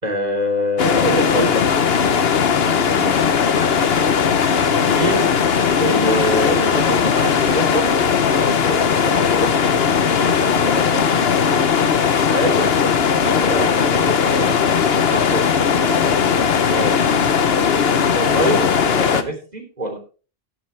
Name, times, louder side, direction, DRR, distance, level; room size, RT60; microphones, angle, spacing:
voice 1, 0.0-1.6 4.8-5.3 5.8-7.8 8.3-9.5 10.2-10.6 10.9-11.0 12.3-12.9 13.2-14.3 14.9-15.4 16.7-16.9 18.1-18.6 18.9-20.0, equal, 40° right, 3 dB, 3.5 m, -24 dB
sound 1, 0.8-19.2, left 6 dB, 70° left, 1.2 m, -18 dB
voice 2, 2.9-3.3 10.6-11.7 13.9-14.6 15.8-16.3 18.3-19.0, left 1 dB, 5° left, 5 dB, 1.2 m, -33 dB
sound 2, 2.9-7.9, right 2 dB, 80° right, 3.4 m, -39 dB
12.5 x 11.5 x 3.4 m, 0.35 s
omnidirectional pair, 1.1 m